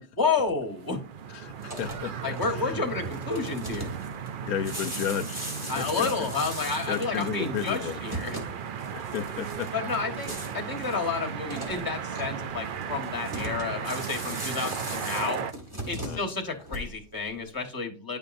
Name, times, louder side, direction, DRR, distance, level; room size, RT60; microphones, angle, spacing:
voice 1, 0.2-1.0 2.2-4.0 5.7-8.4 9.7-15.4 15.9-18.2, left 4 dB, 15° left, 1.2 m, -30 dB
sound 1, 0.7-15.5, right 7 dB, 80° right, 0.4 m, -36 dB
voice 2, 1.3-2.8 4.5-6.3 6.9-8.0 8.9-9.7 16.0-16.2, left 9 dB, 85° left, 1.1 m, -33 dB
sound 2, 1.5-17.2, right 1 dB, 20° right, 1.9 m, -39 dB
9.9 x 5.2 x 2.6 m
omnidirectional pair, 1.5 m